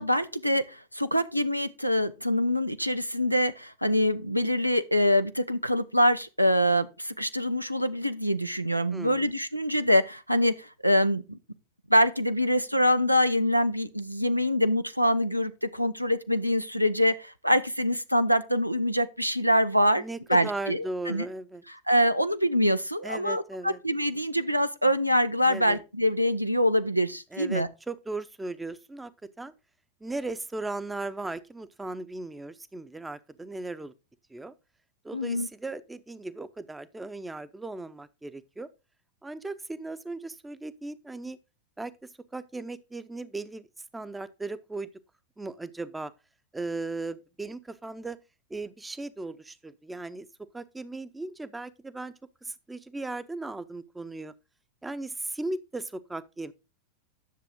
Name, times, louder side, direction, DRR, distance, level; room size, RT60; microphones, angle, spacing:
voice 1, 0.0-11.4 11.9-20.0 20.3-21.3 21.9-27.7 35.1-35.5, equal, 90° right, 0.7 m, -25 dB
voice 2, 8.9-9.3 20.0-21.6 23.0-23.8 25.5-25.8 27.3-29.1 29.4-29.5 30.0-33.9 34.3-34.5 35.0-38.7 39.2-41.4 41.8-41.9 42.3-43.7 43.9-44.9 45.4-46.1 46.5-48.2 48.5-50.3 50.5-52.1 52.4-54.3 54.8-56.5, right 2 dB, 10° right, 0.7 m, -37 dB
10.5 x 6.9 x 3.7 m
figure-of-eight pair, 90°, 0 cm